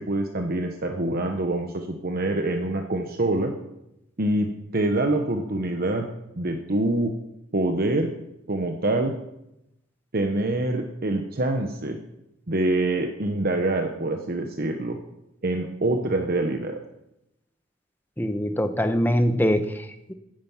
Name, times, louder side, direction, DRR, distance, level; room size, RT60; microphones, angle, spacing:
voice 1, 0.0-3.5 4.2-6.1 6.3-7.1 7.5-8.1 8.5-9.1 10.1-12.0 12.5-15.0 15.4-16.8, right 2 dB, 50° right, 4 dB, 1.0 m, -25 dB
voice 2, 18.2-20.1, equal, 10° left, 8 dB, 0.9 m, -23 dB
10.5 x 9.5 x 7.2 m, 0.85 s
head